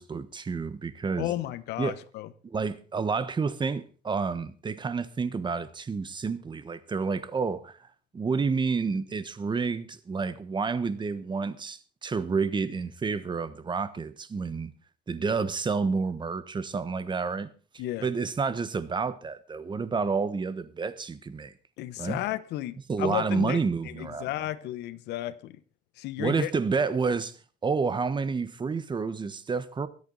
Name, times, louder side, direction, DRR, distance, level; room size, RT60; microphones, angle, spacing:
voice 1, 0.0-1.3 1.8-2.0 2.4-7.7 8.1-14.7 15.1-17.5 18.0-21.5 22.0-22.2 22.9-24.3 26.2-27.3 27.6-29.9, right 5 dB, 25° right, 1.2 m, -29 dB
voice 2, 1.2-2.3 17.8-18.1 21.8-25.6 26.0-26.5, left 14 dB, 80° left, 1.0 m, -33 dB
24.0 x 8.5 x 4.0 m
cardioid pair, 110°, 17 cm